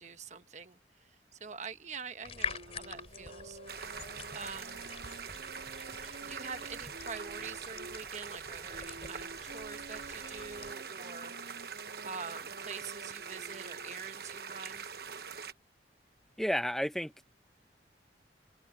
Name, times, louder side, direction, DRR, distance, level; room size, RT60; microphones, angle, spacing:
voice 1, 0.0-3.6 4.3-4.9 6.2-11.6 12.0-14.8, right 5 dB, 40° right, 1.3 m, -45 dB
sound 1, 2.2-10.7, left 5 dB, 35° left, 3.1 m, -45 dB
sound 2, 2.3-8.0 8.7-14.1, right 2 dB, 80° right, 2.6 m, -52 dB
sound 3, 3.7-15.5, right 6 dB, 55° right, 1.1 m, -44 dB
voice 2, 16.4-17.3, equal, ahead, 1.0 m, -32 dB
open air
head